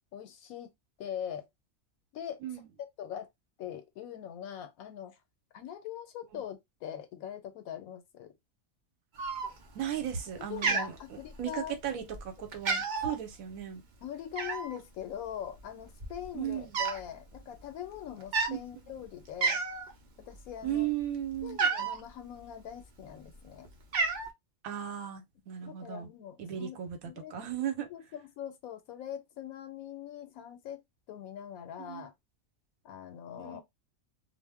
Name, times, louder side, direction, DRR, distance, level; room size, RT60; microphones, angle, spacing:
voice 1, 0.1-0.7 1.0-1.5 2.1-2.4 3.0-3.3 3.6-5.2 5.5-8.3 10.5-12.1 14.0-19.6 20.2-20.9 21.4-23.7 25.6-26.8 27.0-27.3 27.9-30.8 31.1-32.1 32.8-33.6, left 10 dB, 85° left, 1.0 m, -42 dB
Cat, 9.2-9.8 10.1-10.4 10.6-11.6 12.1-12.3 12.5-13.2 14.4-14.8 15.6-15.7 15.9-17.1 17.3-17.6 18.2-18.6 19.0-19.1 19.4-19.9 20.3-22.0 22.8-23.4 23.6-24.3, right 4 dB, 55° right, 0.5 m, -31 dB
voice 2, 9.7-13.8 16.3-16.7 18.5-18.6 20.6-21.6 24.6-26.1 26.4-27.9 31.8-32.1 33.3-33.6, right 10 dB, 80° right, 1.1 m, -36 dB
2.4 x 2.0 x 3.3 m
omnidirectional pair, 1.5 m